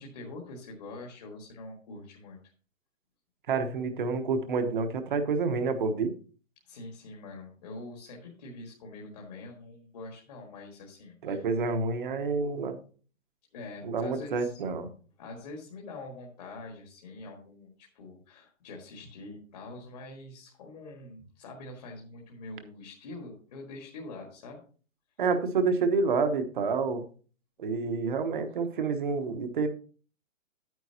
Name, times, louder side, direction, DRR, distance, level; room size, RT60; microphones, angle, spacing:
voice 1, 0.0-2.4 6.6-11.5 13.5-14.5 15.2-24.6, left 2 dB, 30° left, -1 dB, 1.7 m, -45 dB
voice 2, 3.5-6.2 11.2-12.8 13.8-14.9 25.2-27.1 27.6-29.7, right 4 dB, 40° right, 8 dB, 1.1 m, -28 dB
10.0 x 9.3 x 2.8 m, 0.40 s
hypercardioid pair, 180°, 40 cm